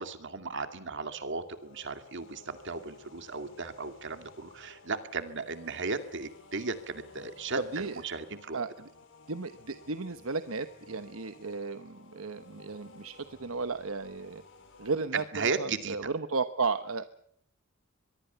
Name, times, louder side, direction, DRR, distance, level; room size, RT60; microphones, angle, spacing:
voice 1, 0.0-8.6 15.1-16.1, right 4 dB, 60° right, 9 dB, 2.3 m, -35 dB
sound 1, 1.2-15.0, left 3 dB, 65° left, 5.5 m, -55 dB
voice 2, 7.6-8.0 8.5-8.7 9.3-14.4 14.8-17.0, right 4 dB, 75° right, 10 dB, 1.1 m, -34 dB
24.0 x 22.5 x 7.0 m, 0.69 s
head